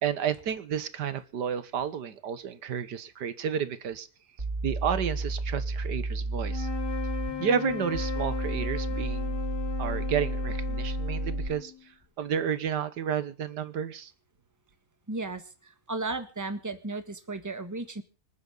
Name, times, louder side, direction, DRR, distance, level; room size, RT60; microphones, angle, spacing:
voice 1, 0.0-4.1 4.6-6.7 7.4-9.4 9.8-11.7 12.2-14.1, right 8 dB, 90° right, 14 dB, 1.8 m, -31 dB
sound 1, 4.4-11.5, right 2 dB, 30° right, 3.1 m, -32 dB
sound 2, 6.4-11.9, left 9 dB, 80° left, 3.2 m, -37 dB
voice 2, 15.1-18.0, right 3 dB, 10° right, 9 dB, 1.6 m, -35 dB
26.5 x 9.6 x 4.0 m, 0.36 s
omnidirectional pair, 1.7 m